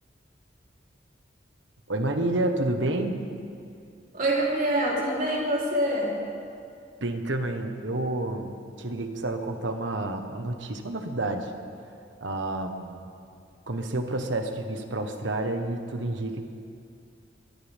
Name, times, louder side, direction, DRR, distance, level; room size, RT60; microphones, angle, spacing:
voice 1, 1.9-3.1 7.0-8.5 8.8-11.5 12.2-13.0 13.7-16.4, right 2 dB, 85° right, 5 dB, 1.4 m, -29 dB
voice 2, 4.1-6.2, right 1 dB, 50° right, -4 dB, 3.6 m, -25 dB
22.5 x 17.5 x 3.7 m, 2.4 s
head